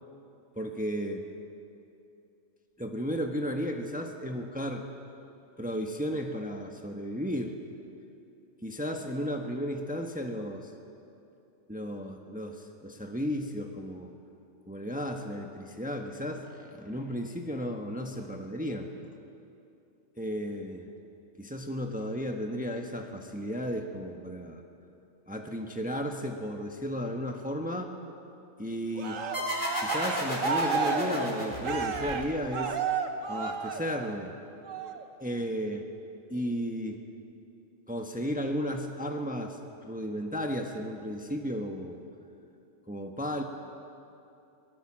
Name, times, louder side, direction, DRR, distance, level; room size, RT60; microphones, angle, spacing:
voice 1, 0.5-1.2 2.8-4.9 5.6-7.6 8.6-10.7 11.7-14.1 14.7-18.9 20.2-20.9 21.4-24.6 25.3-27.9 28.6-29.2 29.8-32.8 33.3-34.3 35.2-35.9 36.3-37.0 37.9-42.0 42.9-43.4, equal, 5° right, 3 dB, 1.3 m, -34 dB
Cheering, 29.0-34.2 34.7-35.0, right 5 dB, 90° right, 1.6 m, -32 dB
sound 1, 29.3-32.6, equal, 45° left, 4.3 m, -33 dB
24.0 x 19.0 x 7.5 m, 2.7 s
omnidirectional pair, 1.3 m